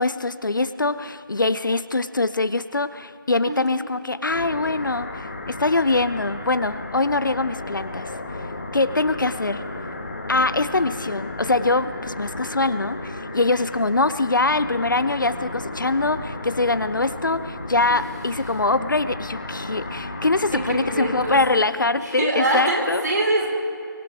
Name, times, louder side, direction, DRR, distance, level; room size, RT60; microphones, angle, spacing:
voice 1, 0.0-8.1 8.7-9.6 10.3-23.0, left 3 dB, 60° left, 14 dB, 0.6 m, -23 dB
sound 1, 4.3-21.5, left 2 dB, 35° left, 1.5 m, -34 dB
voice 2, 20.5-21.6 22.0-23.5, right 2 dB, 50° right, -1 dB, 4.3 m, -24 dB
24.0 x 16.5 x 3.6 m, 2.5 s
figure-of-eight pair, 170°, 12 cm